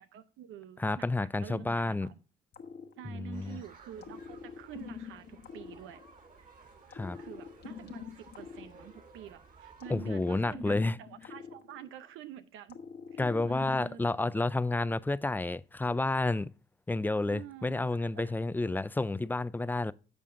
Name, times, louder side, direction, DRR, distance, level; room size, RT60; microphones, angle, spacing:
voice 1, 0.0-2.2 3.0-6.0 6.4-6.5 7.2-12.8 13.1-14.2 17.3-18.3, right 10 dB, 90° right, 0.6 m, -48 dB
voice 2, 0.8-2.1 3.1-3.6 6.9-7.2 9.9-11.0 13.2-16.5 16.9-19.9, left 2 dB, 10° left, 0.4 m, -30 dB
sound 1, 2.5-3.5 4.0-6.4 6.9-9.3 9.8-12.2 12.7-14.2, left 7 dB, 55° left, 1.2 m, -46 dB
sound 2, 3.3-10.4, right 4 dB, 40° right, 3.2 m, -56 dB
11.0 x 6.9 x 2.5 m
cardioid pair, 90°, 20 cm